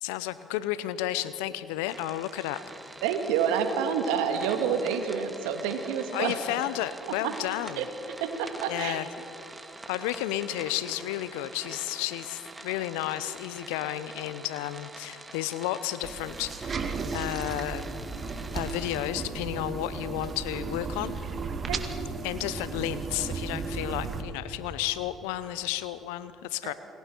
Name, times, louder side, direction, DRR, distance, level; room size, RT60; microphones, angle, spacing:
voice 1, 0.0-2.6 6.1-7.9 8.7-9.1 9.9-16.9 17.1-17.8 18.5-21.1 22.2-26.7, left 14 dB, 75° left, 14 dB, 0.7 m, -32 dB
sound 1, 1.9-19.1, right 2 dB, 15° right, 1.8 m, -45 dB
voice 2, 3.0-6.3 7.2-7.4 7.8-7.9 8.2-9.0 21.7-21.8 26.6-26.7, right 7 dB, 75° right, 6 dB, 1.9 m, -28 dB
sound 2, 16.0-24.2, right 4 dB, 40° right, 2.1 m, -35 dB
29.0 x 20.5 x 4.6 m, 2.8 s
hypercardioid pair, 60°, 0 cm